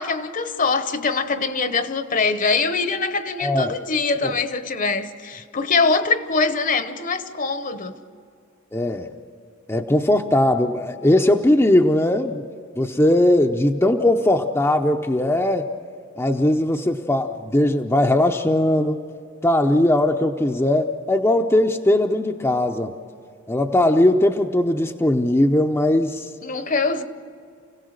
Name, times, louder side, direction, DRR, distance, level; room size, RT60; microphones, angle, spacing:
voice 1, 0.0-8.0 26.4-27.0, left 4 dB, 45° left, 1.0 m, -23 dB
voice 2, 3.4-3.8 4.2-4.3 8.7-9.1 9.7-12.4 12.8-15.7 16.2-19.0 19.4-22.9 23.5-26.3, left 1 dB, 15° left, 0.7 m, -19 dB
29.0 x 17.0 x 6.6 m
head